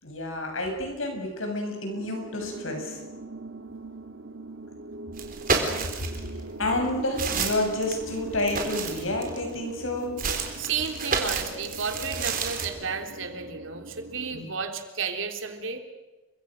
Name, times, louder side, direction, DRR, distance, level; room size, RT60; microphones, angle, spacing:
voice 1, 0.0-3.0 6.6-10.1 14.3-14.5, left 1 dB, 75° left, 3 dB, 8.0 m, -29 dB
sound 1, 1.9-14.4, right 2 dB, 90° right, 2.5 m, -41 dB
sound 2, 5.1-6.3 6.8-9.5 10.2-12.7, right 5 dB, 45° right, 4.2 m, -30 dB
voice 2, 10.6-15.8, right 5 dB, 70° right, 5 dB, 3.4 m, -32 dB
30.0 x 24.5 x 6.6 m, 1.1 s
head